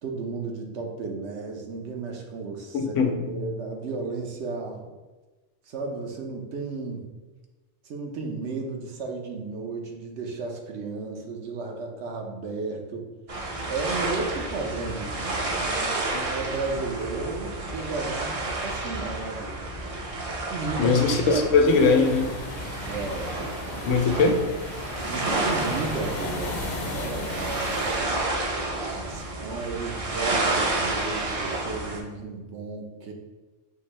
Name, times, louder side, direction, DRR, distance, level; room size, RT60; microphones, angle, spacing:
voice 1, 0.0-4.9 5.7-7.1 7.8-13.1 13.7-19.5 20.5-21.0 21.3-21.5 21.8-22.0 22.9-23.4 25.1-28.5 28.9-33.1, right 4 dB, 70° right, 2 dB, 0.9 m, -34 dB
voice 2, 2.7-3.4 20.8-22.3 23.8-24.4, left 4 dB, 85° left, 4 dB, 1.0 m, -20 dB
sound 1, 13.3-32.0, right 2 dB, 40° right, 0.5 m, -30 dB
sound 2, 21.6-28.1, left 1 dB, 55° left, 1.0 m, -35 dB
5.8 x 2.6 x 3.1 m, 1.2 s
omnidirectional pair, 1.3 m